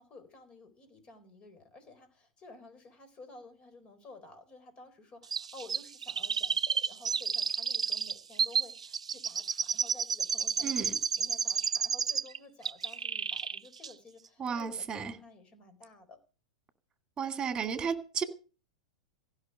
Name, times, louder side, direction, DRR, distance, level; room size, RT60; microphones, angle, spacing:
voice 1, 0.0-16.2, left 2 dB, 30° left, 4.2 m, -53 dB
Chirp tweet, 5.3-12.4 12.6-13.6 13.8-13.9, right 6 dB, 90° right, 0.6 m, -31 dB
voice 2, 10.6-11.0 14.4-15.1 17.2-18.2, right 6 dB, 20° right, 2.3 m, -33 dB
16.0 x 6.0 x 9.7 m
hypercardioid pair, 105°, 3 cm